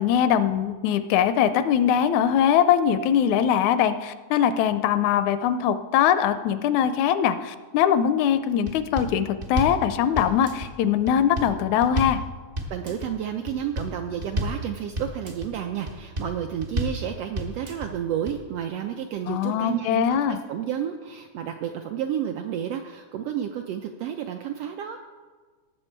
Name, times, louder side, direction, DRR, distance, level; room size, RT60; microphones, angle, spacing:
voice 1, 0.0-12.2 19.3-20.4, left 9 dB, 80° left, 11 dB, 1.9 m, -22 dB
sound 1, 8.7-9.1 9.4-9.8 10.2-10.7 11.1-11.5 11.8-12.2 12.6-13.1 13.5-13.9 14.2-14.6 15.0-15.5 15.9-16.3 16.6-17.0 17.4-17.9 18.3-18.4, equal, 60° right, 0.5 m, -30 dB
voice 2, 12.7-25.0, right 9 dB, 85° right, 5 dB, 1.4 m, -31 dB
17.5 x 7.2 x 4.5 m, 1.4 s
omnidirectional pair, 3.3 m